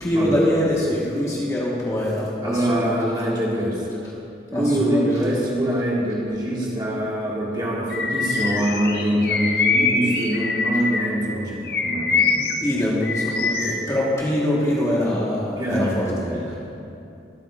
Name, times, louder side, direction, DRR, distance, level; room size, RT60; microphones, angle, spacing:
voice 1, 0.0-3.1 4.5-5.1 12.3-16.0, left 1 dB, 15° left, -5 dB, 1.3 m, -23 dB
voice 2, 2.4-3.9 4.5-12.4 15.6-16.6, right 1 dB, 25° right, -5 dB, 1.7 m, -24 dB
Bird vocalization bird call bird song, 7.9-11.2 11.6-13.9, left 4 dB, 60° left, 0.8 m, -24 dB
22.0 x 8.9 x 2.4 m, 2.7 s
head